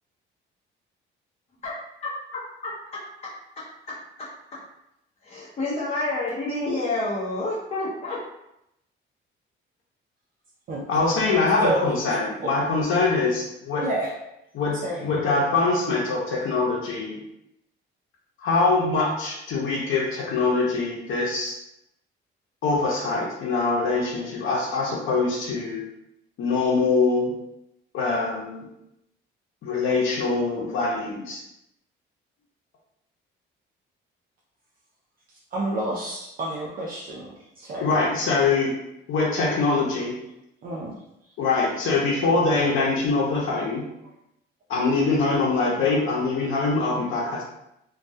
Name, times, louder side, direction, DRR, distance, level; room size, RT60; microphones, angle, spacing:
voice 1, 5.2-8.2, left 2 dB, 30° left, -7 dB, 0.6 m, -28 dB
voice 2, 10.9-13.9 14.5-17.2 18.4-21.6 22.6-25.8 26.4-27.3 27.9-28.7 29.6-31.4 37.8-38.8 39.1-40.2 41.4-43.8 44.7-47.4, left 3 dB, 70° left, -3 dB, 0.7 m, -23 dB
voice 3, 11.6-12.0 12.4-12.5 13.8-14.1 14.8-15.1 35.5-38.0 40.6-41.0, right 1 dB, 45° right, -4 dB, 0.4 m, -29 dB
2.3 x 2.1 x 2.6 m, 0.82 s
cardioid pair, 110°, 21 cm